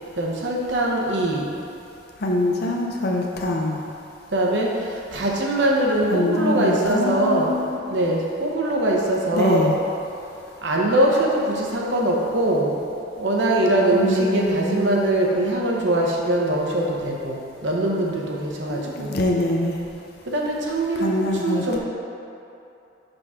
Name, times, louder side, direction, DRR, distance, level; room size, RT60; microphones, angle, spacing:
voice 1, 0.2-1.5 4.3-4.7 5.1-7.6 7.9-9.7 10.6-12.8 13.2-19.1 20.3-21.1 21.4-21.8, right 1 dB, 70° right, -2 dB, 0.9 m, -22 dB
voice 2, 2.2-3.8 6.1-7.8 9.3-9.8 13.9-15.0 18.7-19.8 21.0-21.8, left 1 dB, 55° left, -1 dB, 0.6 m, -24 dB
5.3 x 3.6 x 5.6 m, 2.8 s
head